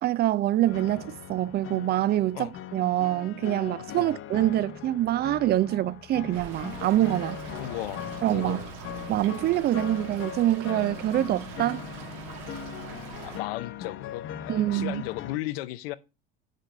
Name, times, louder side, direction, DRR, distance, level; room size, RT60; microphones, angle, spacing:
voice 1, 0.0-7.4 8.2-8.6 9.1-11.8 14.5-15.0, right 14 dB, 35° right, 0.4 m, -25 dB
sound 1, 0.7-15.4, left 10 dB, 45° left, 1.0 m, -40 dB
Stream / Trickle dribble, 6.3-13.4, right 7 dB, 70° right, 1.8 m, -43 dB
voice 2, 7.6-8.7 13.2-16.0, left 17 dB, 75° left, 0.7 m, -35 dB
9.4 x 5.2 x 5.1 m
hypercardioid pair, 85°, 29 cm